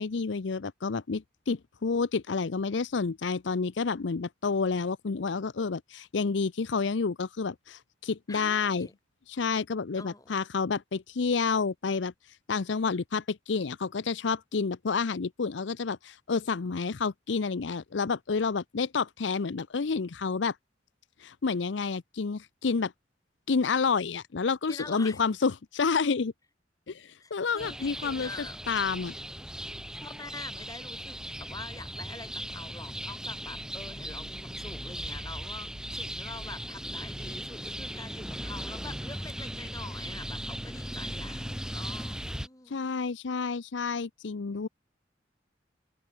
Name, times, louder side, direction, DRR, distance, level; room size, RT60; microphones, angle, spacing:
voice 1, 0.0-8.9 9.3-12.1 12.5-20.5 21.2-22.9 23.5-26.3 26.9-28.3 28.7-29.1 42.7-44.7, left 5 dB, 80° left, 0.6 m, -29 dB
voice 2, 8.3-8.9 9.9-10.3 24.7-25.2 27.2-28.6 30.0-42.9, left 3 dB, 20° left, 2.1 m, -45 dB
sound 1, 27.6-42.5, right 1 dB, 5° right, 1.7 m, -38 dB
head